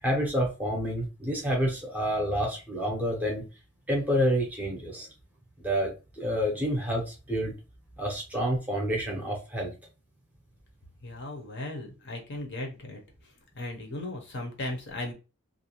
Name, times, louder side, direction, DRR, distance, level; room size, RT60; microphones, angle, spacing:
voice 1, 0.0-3.4 3.9-5.1 5.6-7.6 8.0-9.7, equal, 5° right, -1 dB, 0.6 m, -28 dB
voice 2, 11.0-13.0 13.5-15.1, left 2 dB, 50° left, 2 dB, 0.7 m, -36 dB
2.5 x 2.2 x 2.8 m, 0.31 s
head